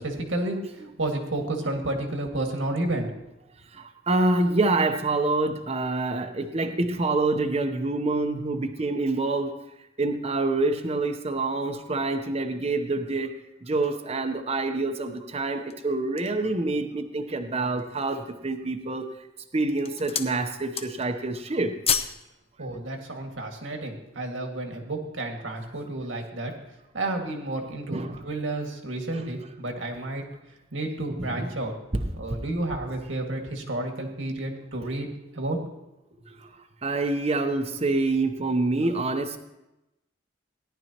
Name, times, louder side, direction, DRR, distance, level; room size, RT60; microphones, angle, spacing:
voice 1, 0.0-3.1 22.6-26.6 26.9-30.3 30.7-31.7 32.1-35.1 35.3-35.6 36.1-36.4, right 2 dB, 85° right, 3 dB, 1.9 m, -31 dB
voice 2, 3.7-9.5 10.0-13.3 13.6-19.0 19.5-21.8 27.9-28.2 31.2-31.5 36.8-39.4, right 2 dB, 35° right, 6 dB, 0.8 m, -26 dB
sound 1, 15.5-16.5 17.1-17.2 17.6-18.2 18.9-19.3 19.6-20.4 20.6-21.2 21.4-22.2 22.5-22.7, left 7 dB, 30° left, 0.7 m, -30 dB
17.0 x 11.0 x 2.9 m, 0.93 s
head